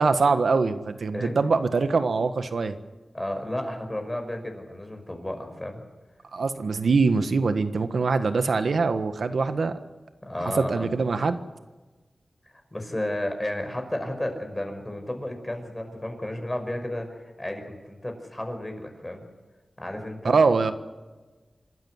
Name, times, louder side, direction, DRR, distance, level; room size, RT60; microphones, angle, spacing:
voice 1, 0.0-2.7 6.3-9.7 10.5-11.4 20.2-20.7, right 4 dB, 80° right, 9 dB, 1.5 m, -23 dB
voice 2, 3.1-5.8 10.2-10.9 12.5-19.2 19.8-20.4, left 1 dB, 20° left, 5 dB, 5.5 m, -33 dB
27.0 x 13.0 x 9.8 m, 1.3 s
wide cardioid pair, 70°, 0 cm